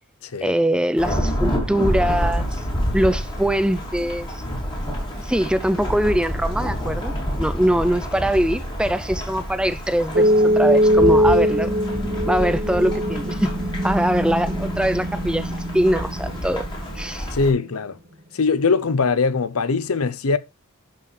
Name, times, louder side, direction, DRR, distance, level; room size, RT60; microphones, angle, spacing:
voice 1, 0.4-2.6 2.9-4.4 5.2-11.7 12.2-13.5 13.8-16.6 17.0-17.3, right 1 dB, 5° right, 0.4 m, -22 dB
Thunderstorm / Rain, 1.0-17.5, equal, 20° left, 2.9 m, -28 dB
sound 1, 10.1-17.1, equal, 40° right, 1.1 m, -21 dB
voice 2, 17.3-18.0 18.3-20.4, left 4 dB, 80° left, 0.7 m, -21 dB
11.5 x 5.6 x 3.2 m
head